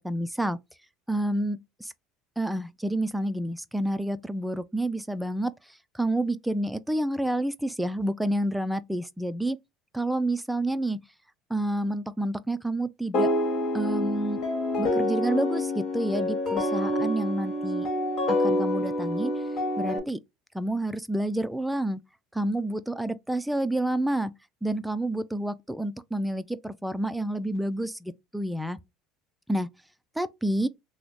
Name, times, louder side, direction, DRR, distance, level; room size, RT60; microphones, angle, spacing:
voice 1, 0.0-0.6 1.1-1.9 2.4-9.6 9.9-11.0 11.5-13.3 13.7-14.4 14.8-17.9 18.3-19.3 19.8-20.2 20.5-22.0 22.3-24.3 24.6-28.8 29.5-29.7 30.2-30.7, right 1 dB, 5° right, 0.3 m, -29 dB
sound 1, 13.1-20.0, left 1 dB, 55° left, 1.3 m, -27 dB
3.1 x 2.0 x 3.9 m
supercardioid pair, 100°, 0 cm